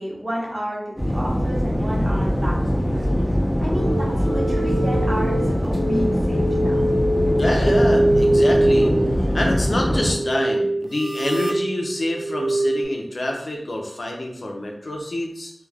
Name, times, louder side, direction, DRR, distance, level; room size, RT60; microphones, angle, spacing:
voice 1, 0.0-3.1 3.6-6.8, equal, 40° right, -4 dB, 1.0 m, -30 dB
sound 1, 1.0-10.1, equal, ahead, 0.7 m, -22 dB
sound 2, 3.7-12.8, right 1 dB, 60° right, 0.4 m, -23 dB
voice 2, 7.3-8.9 9.3-15.5, left 1 dB, 75° left, 1 dB, 0.5 m, -26 dB
2.3 x 2.3 x 3.2 m, 0.72 s
wide cardioid pair, 50°, 0 cm